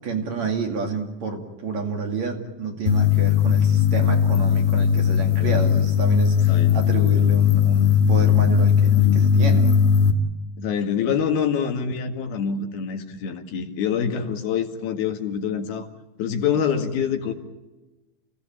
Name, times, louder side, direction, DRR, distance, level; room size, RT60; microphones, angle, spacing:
voice 1, 0.0-9.8, right 3 dB, 50° right, 3 dB, 3.6 m, -29 dB
sound 1, 2.9-10.1, left 8 dB, 45° left, 3.2 m, -18 dB
voice 2, 5.4-5.9 6.5-6.8 10.6-15.9 16.2-17.3, left 7 dB, 85° left, 4 dB, 3.9 m, -26 dB
28.5 x 17.5 x 8.9 m, 1.1 s
omnidirectional pair, 4.2 m